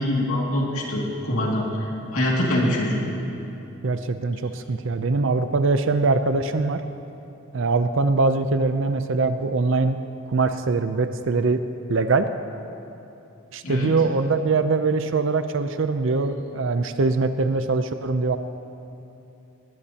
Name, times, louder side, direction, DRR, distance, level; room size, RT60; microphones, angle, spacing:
voice 1, 0.0-3.0 13.6-14.0, left 1 dB, 85° left, -3 dB, 2.4 m, -24 dB
voice 2, 3.8-6.8 7.5-10.0 10.3-11.6 11.9-12.3 13.5-18.4, right 3 dB, 60° right, 9 dB, 0.5 m, -22 dB
19.5 x 18.0 x 2.9 m, 2.8 s
head